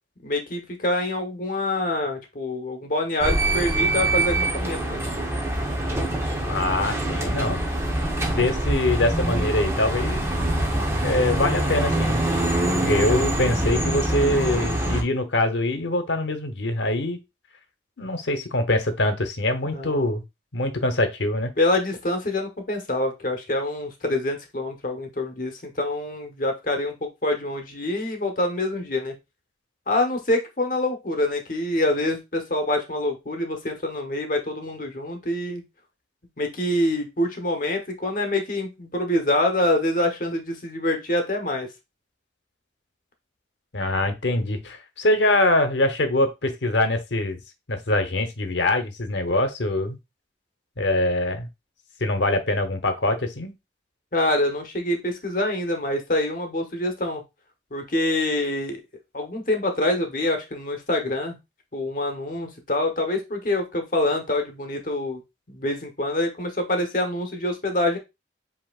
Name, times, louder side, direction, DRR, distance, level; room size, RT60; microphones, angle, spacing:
voice 1, 0.2-5.0 19.6-20.1 21.6-29.1 29.9-35.6 36.4-41.7 54.1-57.2 57.7-58.8 59.1-61.4 61.7-65.2 65.5-68.0, left 1 dB, 45° left, 4 dB, 1.0 m, -26 dB
sound 1, 3.2-15.0, right 1 dB, 15° right, 0.8 m, -24 dB
voice 2, 6.4-7.6 8.2-10.3 11.0-12.3 12.7-17.2 18.0-20.2 20.5-21.5 43.7-47.4 47.7-50.0 50.8-51.5 52.0-53.5, left 1 dB, 80° left, 7 dB, 0.9 m, -24 dB
7.6 x 2.9 x 2.4 m, 0.23 s
head